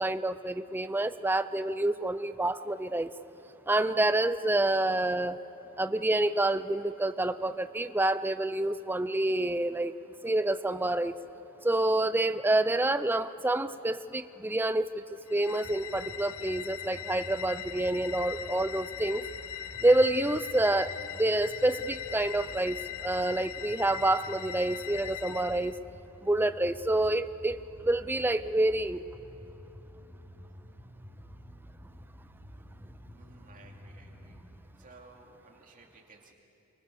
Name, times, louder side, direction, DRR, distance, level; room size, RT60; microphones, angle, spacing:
voice 1, 0.0-3.1 3.7-5.4 5.8-9.9 10.2-11.1 11.6-15.0 15.3-19.2 19.8-20.9 21.2-25.7 26.2-29.0, right 1 dB, 10° right, 12 dB, 0.5 m, -28 dB
sound 1, 15.3-25.8, left 11 dB, 70° left, 0.6 m, -41 dB
sound 2, 15.6-34.4, equal, 45° left, 5.5 m, -50 dB
voice 2, 33.2-34.4 34.8-36.3, right 3 dB, 35° right, 1 dB, 2.6 m, -56 dB
28.0 x 24.0 x 6.9 m, 3.0 s
head